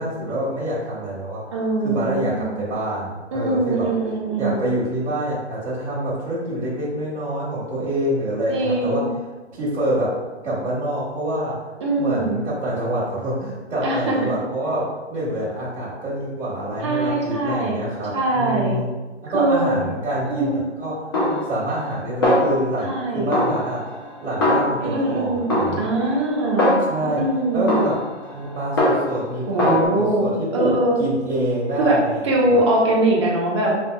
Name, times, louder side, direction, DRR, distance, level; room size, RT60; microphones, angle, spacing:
voice 1, 0.0-1.4 1.8-3.9 4.4-9.0 9.5-10.1 10.4-11.6 12.0-14.8 15.1-18.9 19.3-21.0 21.4-23.8 24.2-25.9 26.8-27.2 27.5-28.0 28.3-30.7 31.0-32.3 32.5-32.6, right 1 dB, 80° right, -9 dB, 1.4 m, -26 dB
voice 2, 1.5-2.5 3.3-4.7 8.5-9.1 11.8-12.4 13.8-14.2 16.8-17.8 18.1-18.7 19.3-19.7 20.2-20.6 22.8-23.3 24.8-25.5 25.8-26.7 27.0-27.7 29.5-30.3 30.5-31.0 31.8-32.0 32.2-33.7, right 2 dB, 25° right, -3 dB, 0.6 m, -22 dB
Snare drum, 21.1-22.0 22.2-23.0 23.3-25.1 25.5-27.2 27.7-29.3 29.6-29.9, left 1 dB, 20° left, 0.5 m, -22 dB
5.2 x 2.7 x 2.2 m, 1.2 s
hypercardioid pair, 155°, 35 cm